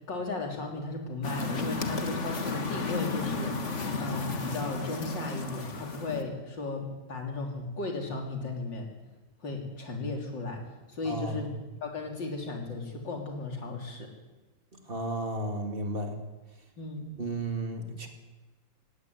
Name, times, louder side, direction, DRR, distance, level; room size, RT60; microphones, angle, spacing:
voice 1, 0.1-8.9 9.4-10.6 10.9-11.5 11.8-14.1 16.8-17.1, left 3 dB, 75° left, 2 dB, 4.1 m, -35 dB
sound 1, 1.2-6.2, left 3 dB, 40° left, 2.0 m, -33 dB
voice 2, 11.0-11.5 14.7-16.2 17.1-18.1, right 2 dB, 30° right, 4 dB, 2.6 m, -33 dB
18.0 x 16.5 x 9.6 m, 1.2 s
omnidirectional pair, 2.0 m